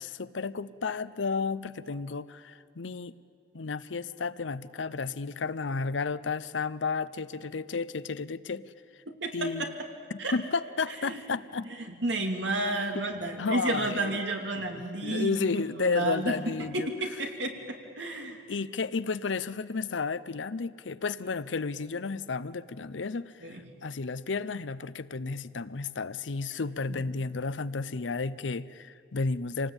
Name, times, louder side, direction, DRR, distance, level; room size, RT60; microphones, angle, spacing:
voice 1, 0.0-3.2 3.5-8.7 9.3-9.7 10.1-11.7 13.4-14.2 15.0-16.9 18.5-29.7, left 4 dB, 90° left, 16 dB, 0.7 m, -32 dB
voice 2, 9.1-9.7 10.2-10.3 11.0-11.2 12.0-15.5 15.8-16.4 16.7-18.4 23.4-23.6 26.9-27.0, right 2 dB, 80° right, 3 dB, 2.7 m, -31 dB
26.5 x 18.5 x 9.0 m, 2.3 s
head